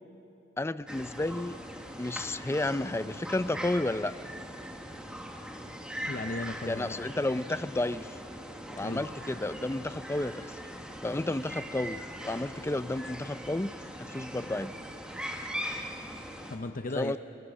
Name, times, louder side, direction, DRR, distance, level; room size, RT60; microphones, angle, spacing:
voice 1, 0.6-1.6 2.0-4.1 6.7-8.2 8.7-10.6 11.0-13.7 14.0-14.7 16.9-17.2, left 2 dB, 15° left, 14 dB, 0.4 m, -32 dB
sound 1, 0.9-16.6, equal, 5° right, 1.5 m, -41 dB
voice 2, 6.1-7.1 8.8-9.0 16.5-17.2, left 2 dB, 45° left, 7 dB, 0.7 m, -36 dB
29.5 x 18.5 x 6.4 m, 2.6 s
head